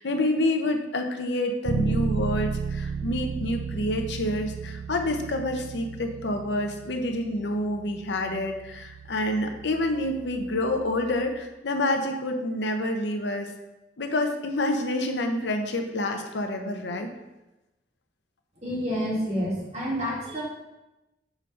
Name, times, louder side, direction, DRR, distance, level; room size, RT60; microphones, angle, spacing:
voice 1, 0.0-13.5 14.0-17.1, left 1 dB, 85° left, 4 dB, 0.7 m, -28 dB
Bass guitar, 1.6-11.4, right 5 dB, 70° right, 0.4 m, -34 dB
voice 2, 18.6-20.4, equal, 40° right, -5 dB, 1.9 m, -28 dB
6.0 x 3.3 x 5.4 m, 1.0 s
head